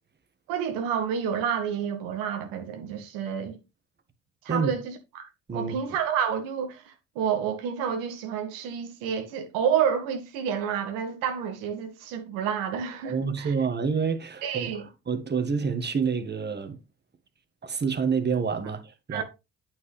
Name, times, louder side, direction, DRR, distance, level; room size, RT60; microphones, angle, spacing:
voice 1, 0.5-3.6 4.4-13.5 14.4-14.8 19.1-19.2, right 8 dB, 85° right, 1.8 m, -29 dB
voice 2, 13.0-16.8 17.6-19.2, right 5 dB, 30° right, 1.6 m, -28 dB
9.1 x 6.0 x 3.3 m
supercardioid pair, 65°, 32 cm